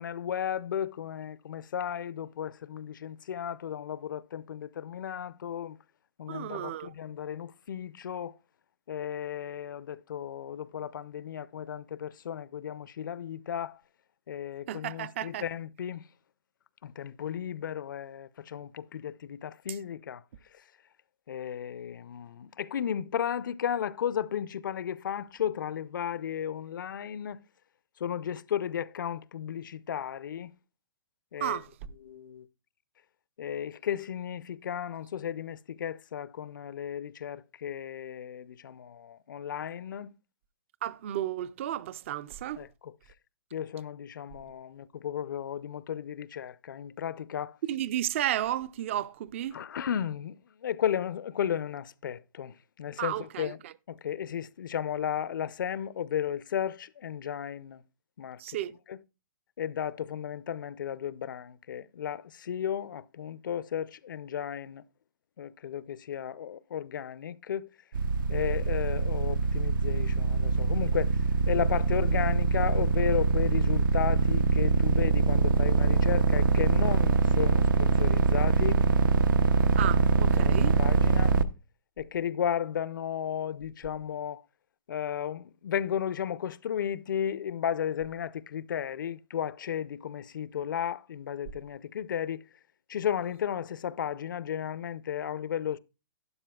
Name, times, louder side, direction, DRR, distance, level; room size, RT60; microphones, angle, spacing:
voice 1, 0.0-5.8 6.2-8.3 8.9-13.8 14.3-16.0 16.8-20.2 21.3-27.4 28.0-30.5 31.3-31.6 32.0-32.4 33.4-40.1 42.6-42.9 43.5-47.5 49.5-50.4 50.6-53.6 53.9-57.8 58.2-58.4 58.9-59.0 59.6-64.8 65.4-67.7 68.3-71.2 71.5-78.8 80.2-81.4 82.0-84.4 84.9-92.4 92.9-95.8, left 9 dB, 70° left, 0.5 m, -34 dB
voice 2, 6.3-6.9 14.7-15.4 19.7-19.8 31.4-31.7 40.8-42.6 47.7-49.6 53.0-53.7 58.4-58.7 79.8-80.8, right 12 dB, 35° right, 0.4 m, -33 dB
sound 1, 67.9-81.4, right 4 dB, 75° right, 0.6 m, -24 dB
12.0 x 9.8 x 2.3 m
hypercardioid pair, 160°, 11 cm